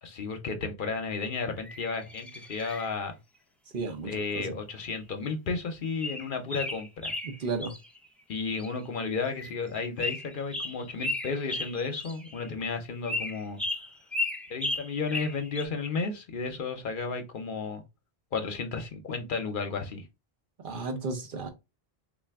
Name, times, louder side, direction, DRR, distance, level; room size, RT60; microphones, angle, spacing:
voice 1, 0.0-3.1 4.0-7.1 8.3-13.6 14.5-17.8 18.3-20.0, left 4 dB, 60° left, 0.8 m, -33 dB
sound 1, 1.6-2.9 5.0-5.1 5.6-5.7 6.0-8.0 8.4-8.9 9.2-9.7 10.0-12.5 13.1-15.6, left 2 dB, ahead, 0.3 m, -35 dB
voice 2, 3.7-4.6 7.2-7.7 20.6-21.5, right 3 dB, 55° right, 0.9 m, -34 dB
3.3 x 2.4 x 3.4 m
omnidirectional pair, 1.0 m